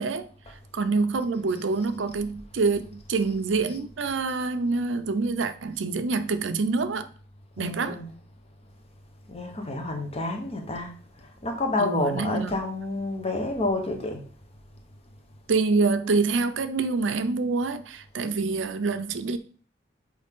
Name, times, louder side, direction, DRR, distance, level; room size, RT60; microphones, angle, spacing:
voice 1, 0.7-7.1 7.6-8.0 11.8-12.5 15.5-19.4, right 4 dB, 90° right, 0.6 m, -26 dB
voice 2, 7.6-8.2 9.3-14.2, left 2 dB, 35° left, 1.1 m, -29 dB
6.4 x 4.8 x 3.6 m
head